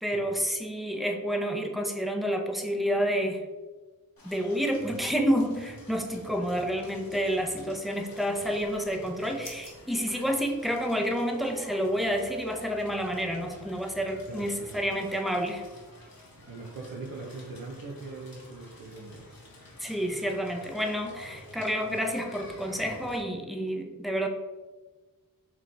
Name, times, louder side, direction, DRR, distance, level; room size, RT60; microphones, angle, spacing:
voice 1, 0.0-3.4 4.2-15.6 19.8-24.3, equal, ahead, 3 dB, 0.6 m, -29 dB
Crackle, 4.2-23.2, left 1 dB, 80° left, 1.4 m, -50 dB
sound 1, 8.3-11.1, left 2 dB, 65° left, 1.1 m, -52 dB
voice 2, 14.3-14.7 16.5-19.4 21.9-22.0, right 3 dB, 70° right, -3 dB, 0.7 m, -41 dB
4.8 x 3.1 x 3.4 m, 1.3 s
wide cardioid pair, 55°, 35 cm